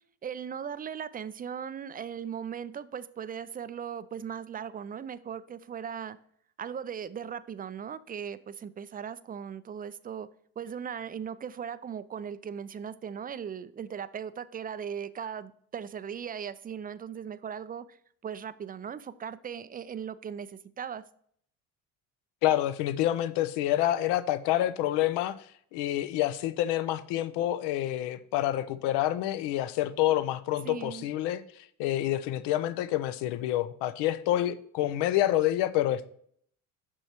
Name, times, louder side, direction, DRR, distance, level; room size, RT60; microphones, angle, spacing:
voice 1, 0.2-6.2 6.6-10.3 10.6-18.0 18.2-21.0 30.6-31.1, right 8 dB, 20° right, 0.4 m, -38 dB
voice 2, 22.4-25.4 25.7-31.4 31.8-36.1, left 13 dB, 65° left, 0.7 m, -28 dB
8.8 x 6.2 x 2.9 m
hypercardioid pair, 60°, 45 cm